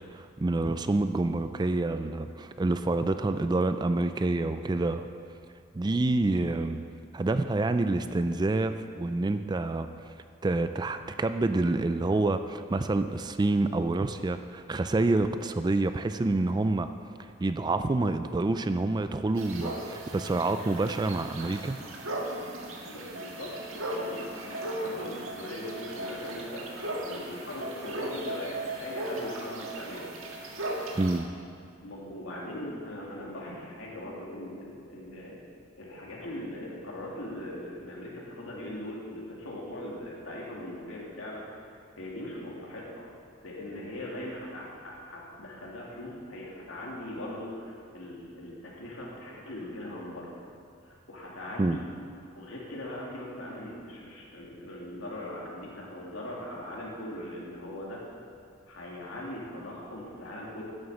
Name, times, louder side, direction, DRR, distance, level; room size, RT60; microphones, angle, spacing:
voice 1, 0.1-5.1 5.7-6.8 7.1-9.9 10.4-16.9 17.4-21.8 31.0-31.3 51.6-51.8, right 2 dB, 20° right, 9 dB, 0.3 m, -27 dB
sound 1, 19.4-31.2, right 1 dB, 85° right, 1.7 m, -37 dB
voice 2, 22.8-30.1 31.8-35.4 35.8-43.1 43.4-50.3 50.9-51.8 52.3-58.0 58.7-60.6, left 1 dB, 75° left, -4 dB, 2.8 m, -40 dB
10.5 x 7.7 x 7.2 m, 2.4 s
head